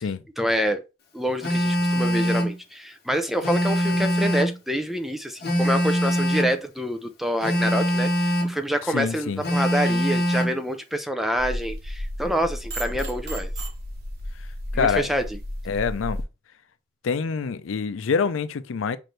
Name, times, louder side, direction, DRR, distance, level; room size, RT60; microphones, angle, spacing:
voice 1, 0.4-0.8 1.1-13.5 14.7-15.2, equal, ahead, 0.4 m, -27 dB
Telephone, 1.4-2.6 3.4-4.6 5.4-6.6 7.4-8.6 9.4-10.6, equal, 50° left, 1.3 m, -23 dB
voice 2, 8.9-9.4 14.7-15.1 15.7-16.2 17.0-19.0, left 5 dB, 85° left, 0.4 m, -25 dB
sound 1, 11.4-16.2, equal, 55° right, 1.0 m, -33 dB
6.0 x 2.6 x 3.2 m
head